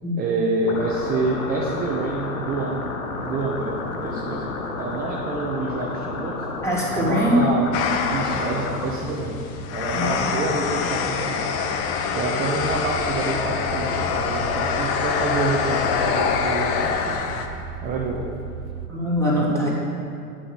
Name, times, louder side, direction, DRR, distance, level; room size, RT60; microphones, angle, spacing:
voice 1, 0.2-2.9 3.2-6.5 6.9-7.7 8.1-9.4 9.7-11.5 12.1-17.2 17.8-18.3 19.4-19.7, right 3 dB, 20° right, -3 dB, 1.1 m, -27 dB
sound 1, 0.7-8.9, left 3 dB, 65° left, 1.6 m, -31 dB
voice 2, 6.6-7.5 9.9-10.3 18.9-19.7, equal, 5° left, -7 dB, 3.1 m, -22 dB
sound 2, 7.7-17.5, left 6 dB, 30° left, 0.9 m, -25 dB
sound 3, 12.7-18.9, right 9 dB, 40° right, 0.7 m, -36 dB
9.5 x 6.9 x 7.4 m, 2.5 s
hypercardioid pair, 115°, 46 cm